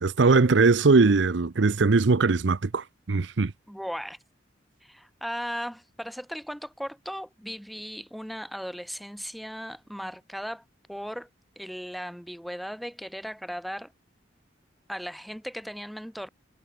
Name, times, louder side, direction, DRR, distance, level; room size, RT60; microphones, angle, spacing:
voice 1, 0.0-3.5, right 4 dB, 80° right, 0.7 m, -21 dB
voice 2, 3.7-4.2 4.8-11.3 11.6-13.9 14.9-16.3, equal, ahead, 3.7 m, -37 dB
head